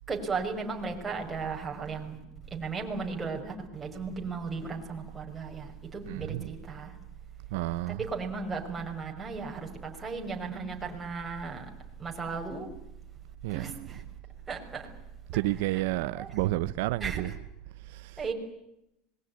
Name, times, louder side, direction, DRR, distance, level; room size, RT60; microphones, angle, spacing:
voice 1, 0.1-2.2 2.5-6.9 7.9-11.7 12.0-12.7 13.5-14.0 14.5-14.9 15.3-15.8 16.2-16.3 17.0-17.3 18.2-18.3, right 4 dB, 15° right, 5.7 m, -36 dB
voice 2, 6.1-6.5 7.5-8.1 13.4-14.0 15.3-17.3 17.9-18.2, right 18 dB, 70° right, 0.9 m, -31 dB
26.0 x 21.5 x 9.7 m
supercardioid pair, 145°, 0 cm